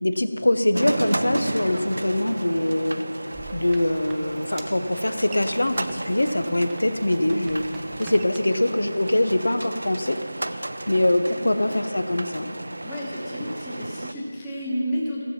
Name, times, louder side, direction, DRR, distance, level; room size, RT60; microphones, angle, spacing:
voice 1, 0.0-3.0 3.5-7.6 8.0-10.5 10.9-12.5, left 1 dB, 85° left, 10 dB, 0.8 m, -23 dB
sound 1, 0.7-14.1, right 1 dB, 85° right, 0.6 m, -33 dB
sound 2, 3.3-8.4, right 4 dB, 10° right, 0.4 m, -45 dB
voice 2, 12.8-15.2, equal, 15° left, -6 dB, 1.3 m, -31 dB
15.0 x 7.5 x 5.8 m, 2.7 s
figure-of-eight pair, 170°, 0 cm